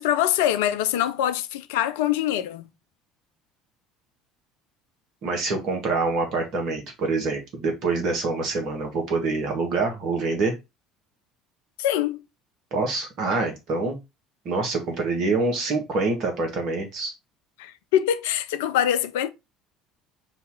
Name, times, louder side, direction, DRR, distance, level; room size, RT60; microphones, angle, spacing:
voice 1, 0.0-2.7 11.8-12.2 17.6-19.3, left 11 dB, 70° left, 0.4 m, -24 dB
voice 2, 5.2-10.5 12.7-14.0 14.5-17.1, right 3 dB, 55° right, 1.6 m, -26 dB
4.1 x 2.8 x 3.8 m
hypercardioid pair, 65°, 0 cm